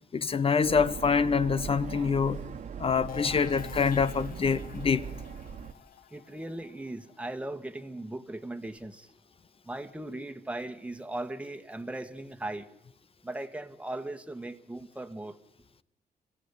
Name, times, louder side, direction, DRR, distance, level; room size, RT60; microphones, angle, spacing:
voice 1, 0.1-2.4 2.8-5.1, left 5 dB, 40° left, 0.8 m, -26 dB
sound 1, 0.6-5.7, right 7 dB, 60° right, 1.5 m, -40 dB
sound 2, 3.1-8.7, left 10 dB, 85° left, 1.1 m, -46 dB
voice 2, 6.1-9.1 9.6-12.7 13.2-15.4, right 1 dB, 10° right, 1.6 m, -38 dB
26.0 x 16.0 x 9.9 m
cardioid pair, 105°, 15 cm